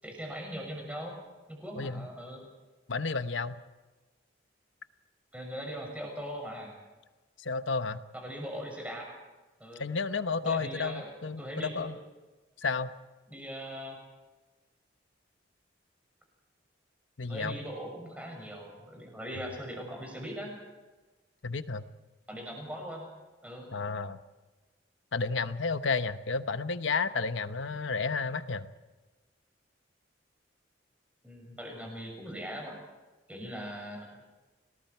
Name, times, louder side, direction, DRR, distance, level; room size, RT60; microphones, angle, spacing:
voice 1, 0.0-1.2 1.5-2.4 5.3-6.7 8.1-9.1 9.6-9.8 10.4-11.1 11.4-11.9 13.3-14.0 17.3-20.5 22.3-23.1 23.4-23.7 31.2-32.8 33.3-34.2, equal, 5° right, 1 dB, 6.5 m, -40 dB
voice 2, 1.8-2.1 2.9-3.6 7.4-8.0 9.8-12.0 12.6-12.9 17.2-17.6 21.4-21.8 23.7-24.2 25.1-28.7, left 4 dB, 85° left, 11 dB, 1.0 m, -32 dB
29.5 x 20.0 x 4.6 m, 1.2 s
head